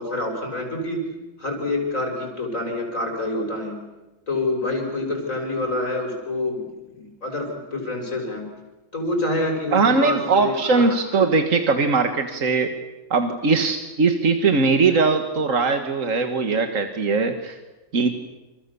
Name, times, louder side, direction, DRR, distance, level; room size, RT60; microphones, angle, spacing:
voice 1, 0.0-3.8 4.3-8.5 8.9-11.0, left 2 dB, 85° left, 2 dB, 6.4 m, -27 dB
voice 2, 9.7-12.7 13.1-17.6 17.9-18.1, right 4 dB, 80° right, 6 dB, 2.1 m, -20 dB
29.0 x 28.5 x 7.0 m, 1.1 s
omnidirectional pair, 1.3 m